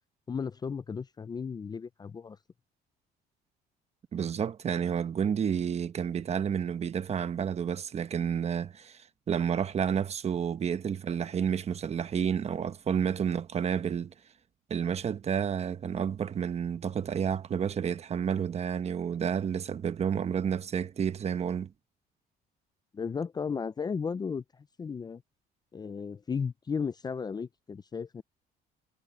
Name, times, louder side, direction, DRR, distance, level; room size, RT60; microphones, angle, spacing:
voice 1, 0.3-2.4 22.9-25.2 25.7-28.2, left 6 dB, 25° left, 0.5 m, -35 dB
voice 2, 4.1-14.1 14.7-21.7, right 7 dB, 40° right, 1.1 m, -30 dB
cardioid pair, 110°, 17 cm